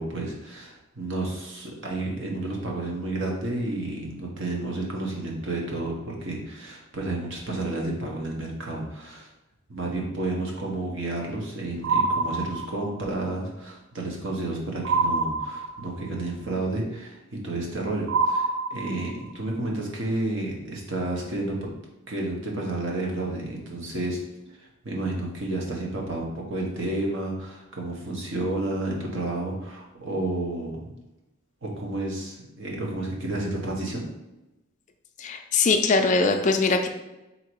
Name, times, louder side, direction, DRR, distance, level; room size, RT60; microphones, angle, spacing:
voice 1, 0.0-9.3 9.7-21.6 22.1-24.2 24.6-30.9 31.6-34.0, right 2 dB, 60° right, -1 dB, 1.0 m, -31 dB
sound 1, 11.8-13.1 14.8-16.1 18.1-19.3, right 4 dB, 80° right, 0.4 m, -26 dB
voice 2, 35.2-36.9, left 4 dB, 35° left, 6 dB, 0.4 m, -21 dB
3.9 x 2.8 x 4.6 m, 0.98 s
head